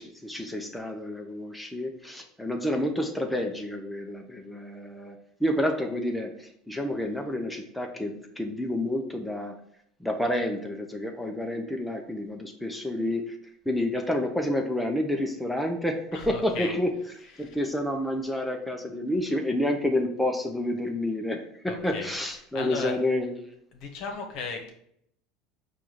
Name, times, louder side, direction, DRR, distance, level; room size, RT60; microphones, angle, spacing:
voice 1, 0.0-9.5 10.0-13.4 13.7-16.9 17.2-21.4 21.6-23.4, left 1 dB, 5° left, 3 dB, 0.6 m, -29 dB
voice 2, 16.1-16.7 17.4-17.5 21.7-22.1 22.5-23.0 23.7-24.7, left 4 dB, 60° left, 3 dB, 1.0 m, -35 dB
4.8 x 2.5 x 4.5 m, 0.69 s
hypercardioid pair, 80°, 0 cm